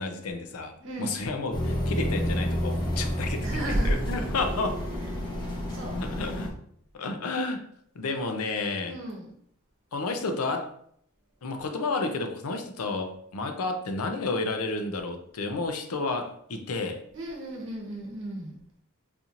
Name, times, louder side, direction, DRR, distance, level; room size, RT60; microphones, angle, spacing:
voice 1, 0.0-4.8 5.9-6.5 6.9-7.6 7.9-9.0 9.9-10.7 11.4-17.0, left 3 dB, 80° left, 5 dB, 0.5 m, -31 dB
voice 2, 0.8-1.2 2.7-3.0 3.4-4.1 5.7-6.0 8.8-9.3 17.1-18.6, right 1 dB, 55° right, -1 dB, 0.9 m, -32 dB
sound 1, 1.5-6.5, equal, 20° left, 0.6 m, -30 dB
4.2 x 2.8 x 2.5 m, 0.68 s
head